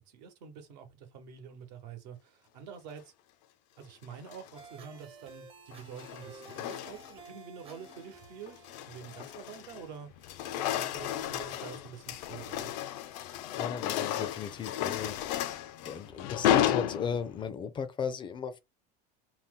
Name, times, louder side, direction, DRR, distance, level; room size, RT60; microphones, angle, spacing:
voice 1, 0.1-3.1 3.8-10.1 10.6-12.7, right 7 dB, 80° right, 1.0 m, -47 dB
sound 1, 4.1-4.6 5.7-7.3 7.7-8.0 8.5-9.9 10.2-17.5, left 11 dB, 75° left, 0.5 m, -33 dB
sound 2, 4.5-10.6, right 4 dB, 25° right, 0.6 m, -54 dB
voice 2, 13.6-15.2 15.8-18.6, left 6 dB, 25° left, 0.4 m, -36 dB
2.8 x 2.0 x 3.5 m
supercardioid pair, 135°, 21 cm